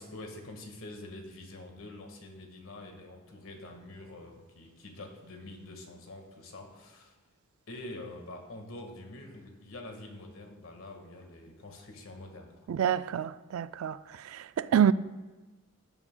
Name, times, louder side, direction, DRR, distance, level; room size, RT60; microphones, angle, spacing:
voice 1, 0.0-7.1 7.7-12.7, left 2 dB, 75° left, 1.6 m, -46 dB
voice 2, 12.7-14.9, right 9 dB, 80° right, 0.3 m, -27 dB
17.5 x 7.2 x 2.2 m
head